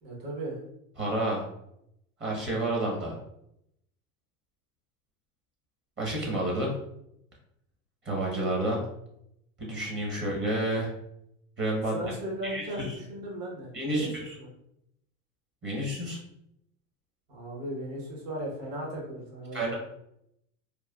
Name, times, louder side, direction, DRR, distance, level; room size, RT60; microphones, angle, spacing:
voice 1, 0.0-0.6 11.9-14.5 17.3-19.8, right 1 dB, 55° right, -2 dB, 1.3 m, -37 dB
voice 2, 1.0-1.4 2.2-3.2 6.0-6.7 8.0-8.8 9.6-10.9 11.6-11.9 12.4-12.9 13.7-14.1 15.6-16.2 19.5-19.7, right 1 dB, 30° right, -2 dB, 0.9 m, -29 dB
3.1 x 2.2 x 2.3 m, 0.77 s
supercardioid pair, 105°, 40 cm